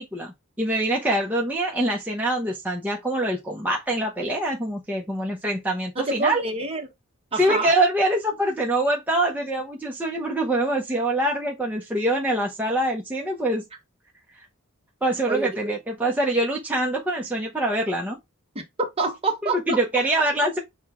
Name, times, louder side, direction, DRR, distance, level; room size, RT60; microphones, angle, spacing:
voice 1, 0.0-6.4 7.4-13.6 15.0-18.2 19.7-20.6, right 1 dB, 10° right, 0.7 m, -24 dB
voice 2, 6.0-6.8 7.3-7.7 15.3-15.7 18.5-20.3, right 3 dB, 30° right, 0.9 m, -27 dB
6.4 x 2.2 x 3.5 m
head